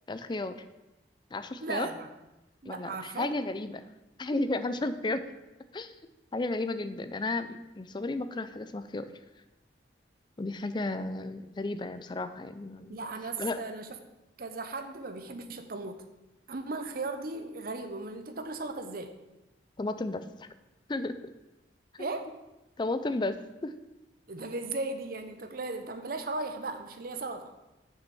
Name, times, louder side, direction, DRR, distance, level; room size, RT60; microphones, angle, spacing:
voice 1, 0.1-0.6 1.3-1.9 2.7-3.8 4.2-5.3 5.7-5.9 6.3-9.1 10.4-13.0 13.4-13.7 19.8-20.5 20.9-21.2 21.9-22.1 22.8-23.7, left 2 dB, 25° left, 11 dB, 0.4 m, -33 dB
voice 2, 1.6-2.1 2.6-3.3 12.9-14.0 14.4-16.0 16.5-19.1 22.0-22.3 24.3-27.5, right 3 dB, 55° right, 8 dB, 0.8 m, -36 dB
7.0 x 6.2 x 6.1 m, 1.0 s
head